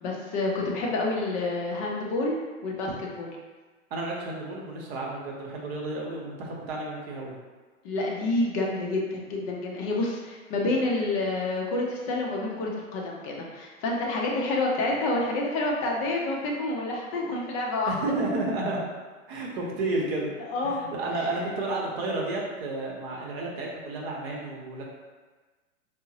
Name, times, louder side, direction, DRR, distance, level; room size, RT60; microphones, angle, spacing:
voice 1, 0.0-3.4 7.8-17.9 20.4-20.8, left 2 dB, 25° left, -2 dB, 0.4 m, -28 dB
voice 2, 3.9-7.3 17.9-18.8 19.3-20.3 20.6-24.8, right 2 dB, 50° right, -2 dB, 0.8 m, -31 dB
3.6 x 2.0 x 2.7 m, 1.3 s
hypercardioid pair, 110°, 41 cm